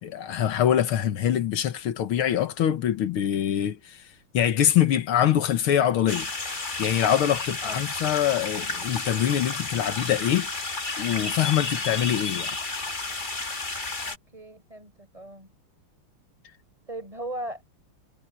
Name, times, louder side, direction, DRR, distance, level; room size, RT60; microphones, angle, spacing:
voice 1, 0.0-4.0 4.3-6.3 6.8-10.5 11.0-12.6, left 10 dB, 75° left, 2.0 m, -24 dB
sound 1, 6.1-14.2, left 3 dB, 25° left, 1.8 m, -32 dB
voice 2, 7.6-7.9 14.1-15.5 16.9-17.6, right 1 dB, 15° right, 5.2 m, -38 dB
omnidirectional pair, 2.4 m